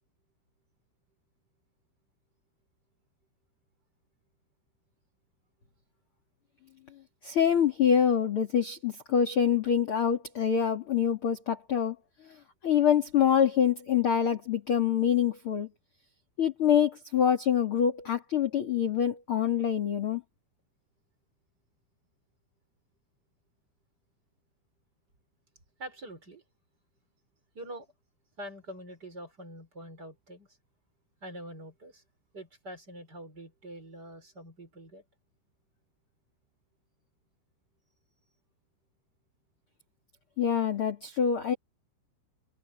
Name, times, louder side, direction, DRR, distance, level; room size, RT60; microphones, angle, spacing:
voice 1, 7.2-12.0 12.2-12.4 12.6-15.7 16.4-20.2 40.4-41.5, left 8 dB, 35° left, 2.6 m, -25 dB
voice 2, 25.8-26.4 27.5-27.9 28.4-30.6 31.2-32.0 32.3-35.0, right 1 dB, 20° right, 5.7 m, -45 dB
omnidirectional pair, 5.7 m